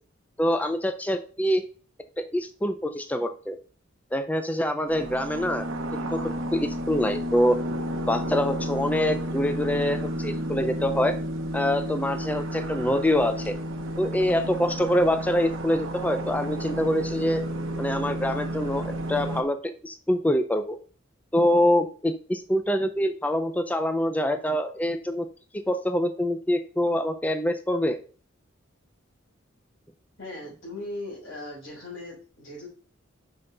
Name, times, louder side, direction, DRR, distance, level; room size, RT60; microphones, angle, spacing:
voice 1, 0.4-1.6 2.2-3.6 4.1-5.7 6.1-6.2 6.5-7.6 8.1-11.1 11.5-13.5 14.0-17.4 17.8-19.6 19.8-20.8 21.3-25.3 25.7-28.0, left 1 dB, 10° left, 7 dB, 0.4 m, -25 dB
sound 1, 4.9-19.4, equal, 75° right, 1.0 m, -31 dB
voice 2, 30.2-32.7, left 1 dB, 65° left, -5 dB, 3.8 m, -38 dB
5.6 x 5.4 x 3.9 m, 0.40 s
head